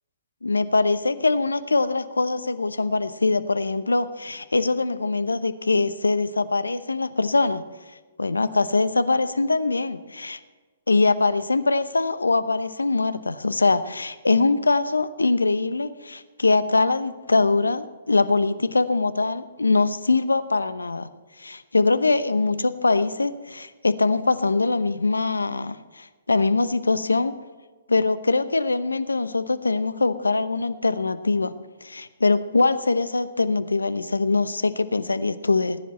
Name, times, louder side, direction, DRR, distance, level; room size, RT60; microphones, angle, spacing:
voice 1, 0.4-7.6 8.2-10.4 10.9-21.1 21.4-27.3 27.9-31.5 31.8-35.8, left 3 dB, 85° left, 13 dB, 0.9 m, -22 dB
19.5 x 10.0 x 4.3 m, 1.3 s
figure-of-eight pair, 125°, 0 cm